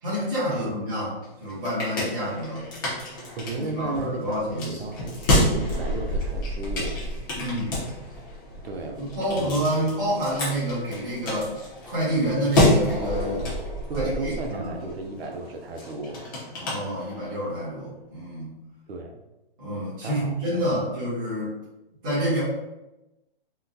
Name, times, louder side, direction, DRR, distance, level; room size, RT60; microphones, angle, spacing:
voice 1, 0.0-2.7 3.6-4.7 7.4-7.9 9.0-11.5 11.8-13.4 13.9-14.9 16.5-18.6 19.6-21.5 22.0-22.4, equal, 20° right, -12 dB, 1.2 m, -28 dB
sound 1, 1.2-17.5, left 1 dB, 20° left, 0.6 m, -29 dB
voice 2, 3.4-7.0 8.6-9.0 9.3-9.8 13.9-16.2 18.9-19.2 20.0-20.7, right 3 dB, 85° right, 3 dB, 0.6 m, -34 dB
3.7 x 2.2 x 2.6 m, 0.98 s
hypercardioid pair, 165°, 30 cm